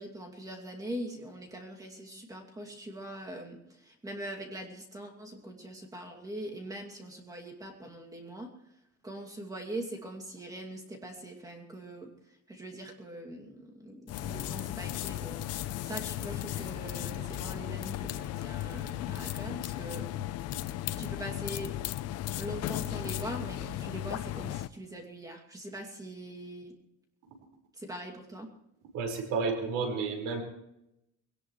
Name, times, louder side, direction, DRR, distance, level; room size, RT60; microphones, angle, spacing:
voice 1, 0.0-8.5 9.0-20.1 21.0-21.8 22.4-26.7 27.7-28.5, right 1 dB, 10° right, 1 dB, 2.5 m, -42 dB
sound 1, 14.1-24.7, left 13 dB, 55° left, 0.7 m, -36 dB
voice 2, 28.9-30.4, right 4 dB, 85° right, 3 dB, 5.1 m, -31 dB
21.5 x 18.0 x 3.2 m, 0.83 s
cardioid pair, 155°, 31 cm